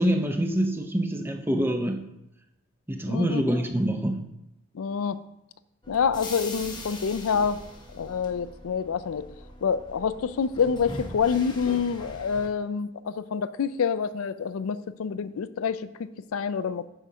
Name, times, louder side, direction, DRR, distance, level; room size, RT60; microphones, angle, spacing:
voice 1, 0.0-2.1 2.9-4.3, equal, 10° right, 6 dB, 0.6 m, -25 dB
voice 2, 3.1-3.4 4.7-5.2 5.9-7.6 7.9-9.3 9.6-16.9, left 6 dB, 75° left, 14 dB, 0.4 m, -27 dB
sound 1, 5.8-12.5, left 1 dB, 20° left, 0.9 m, -41 dB
9.1 x 4.9 x 5.5 m, 0.89 s
head